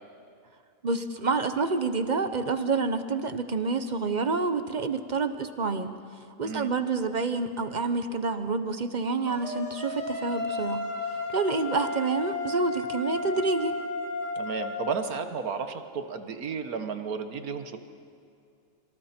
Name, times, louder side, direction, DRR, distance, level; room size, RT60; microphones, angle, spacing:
voice 1, 0.8-5.9 6.4-10.8 11.3-13.7, right 4 dB, 35° right, 10 dB, 0.8 m, -28 dB
sound 1, 9.3-15.0, left 3 dB, 50° left, 2.4 m, -33 dB
voice 2, 14.4-17.8, right 6 dB, 80° right, 8 dB, 1.7 m, -33 dB
26.5 x 24.5 x 4.4 m, 2.4 s
omnidirectional pair, 1.5 m